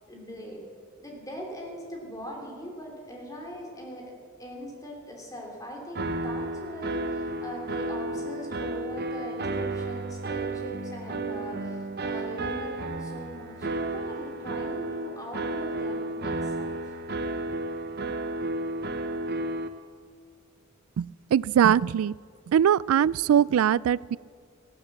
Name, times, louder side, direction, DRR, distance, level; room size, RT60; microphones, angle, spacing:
voice 1, 0.1-0.6 1.0-16.9, equal, 15° left, -1 dB, 3.1 m, -41 dB
sound 1, 5.9-19.7, right 2 dB, 50° right, 0.9 m, -32 dB
voice 2, 21.0-22.1 22.5-24.2, right 9 dB, 80° right, 19 dB, 0.3 m, -22 dB
16.0 x 12.0 x 7.4 m, 2.1 s
head